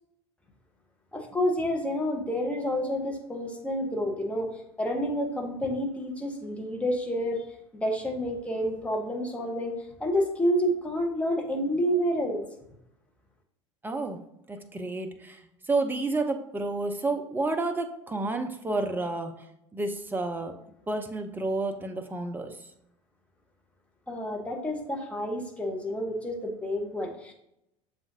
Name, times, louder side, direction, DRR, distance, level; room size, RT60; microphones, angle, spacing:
voice 1, 1.1-7.4 7.7-9.7 10.0-12.4 24.1-27.3, equal, 5° left, 1 dB, 0.9 m, -29 dB
voice 2, 13.8-14.2 14.5-15.4 15.7-19.3 19.7-20.5 20.9-22.5, right 2 dB, 10° right, 5 dB, 0.6 m, -30 dB
7.0 x 2.5 x 2.7 m, 0.81 s
figure-of-eight pair, 70°, 16 cm